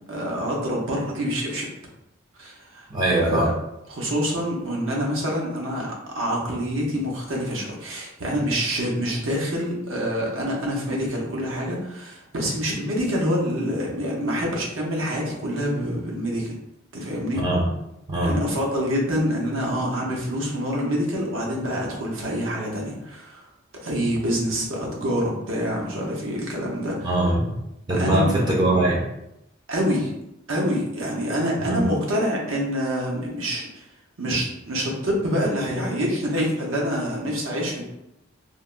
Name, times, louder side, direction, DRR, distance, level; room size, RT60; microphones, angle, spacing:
voice 1, 0.1-1.7 2.3-2.9 3.1-3.5 3.9-16.5 16.9-17.4 18.2-23.5 23.8-27.1 27.9-28.3 29.7-30.1 30.5-33.9 34.2-37.8, equal, 75° right, -2 dB, 0.7 m, -26 dB
voice 2, 2.9-3.5 17.3-17.7 18.1-18.4 27.0-27.4 27.9-29.0 31.6-31.8, right 1 dB, 20° right, -3 dB, 0.5 m, -21 dB
3.3 x 2.1 x 2.4 m, 0.86 s
head